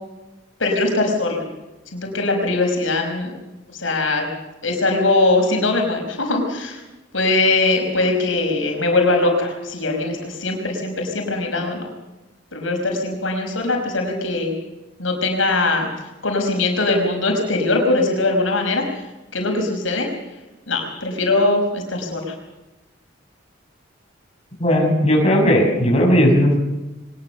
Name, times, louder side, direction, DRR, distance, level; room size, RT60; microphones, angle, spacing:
voice 1, 0.6-1.4 1.9-3.3 3.7-4.3 4.6-6.8 7.1-11.8 12.5-14.5 15.0-15.9 16.2-18.8 19.3-20.1 20.7-22.3, left 2 dB, 85° left, 2 dB, 5.4 m, -21 dB
voice 2, 24.6-26.6, equal, 30° left, 1 dB, 6.0 m, -16 dB
23.0 x 20.5 x 6.9 m, 1.0 s
head